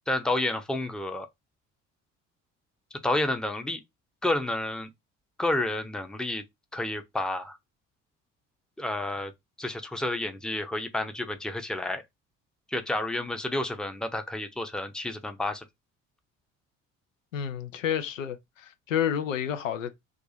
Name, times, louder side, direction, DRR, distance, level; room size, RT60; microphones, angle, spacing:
voice 1, 0.1-1.3 2.9-3.8 4.2-4.9 5.4-6.4 6.7-7.6 8.8-9.3 9.6-12.0 12.7-15.6, left 1 dB, ahead, 0.6 m, -30 dB
voice 2, 17.3-20.1, left 9 dB, 85° left, 0.6 m, -30 dB
2.6 x 2.4 x 4.0 m
figure-of-eight pair, 55°, 38 cm